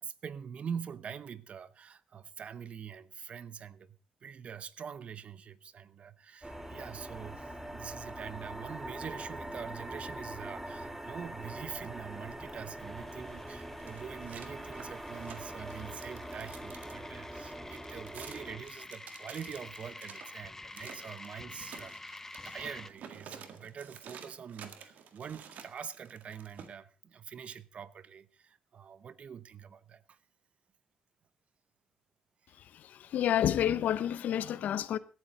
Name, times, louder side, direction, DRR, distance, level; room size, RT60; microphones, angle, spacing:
voice 1, 0.0-22.2 22.4-30.2, right 7 dB, 50° right, 0.8 m, -44 dB
sound 1, 6.4-18.6, right 1 dB, 10° right, 2.2 m, -43 dB
sound 2, 12.8-22.9, left 2 dB, 15° left, 0.7 m, -49 dB
sound 3, 13.3-17.0 17.7-20.3 20.7-21.3 21.6-26.7, right 7 dB, 70° right, 1.8 m, -50 dB
voice 2, 32.6-35.0, left 10 dB, 75° left, 0.8 m, -30 dB
16.5 x 12.5 x 4.1 m
cardioid pair, 105°, 3 cm